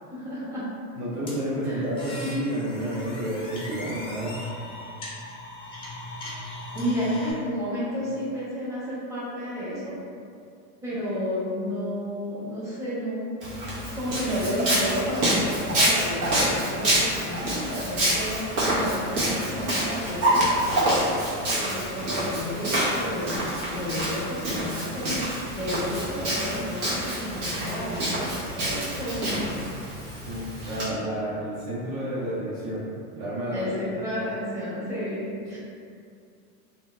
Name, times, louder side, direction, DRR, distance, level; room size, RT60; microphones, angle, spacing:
voice 1, 0.1-0.7 1.6-1.8 6.7-9.9 10.8-13.4 13.7-29.6 33.5-35.6, equal, 5° right, -11 dB, 0.9 m, -31 dB
voice 2, 1.0-4.4 30.3-32.9 33.2-33.7, right 1 dB, 45° right, -7 dB, 0.6 m, -30 dB
sound 1, 1.3-7.3, left 1 dB, 15° left, 0.4 m, -38 dB
Walk footsteps, 13.4-30.8, right 1 dB, 65° right, 1.1 m, -27 dB
2.7 x 2.5 x 2.2 m, 2.3 s
hypercardioid pair, 110°, 46 cm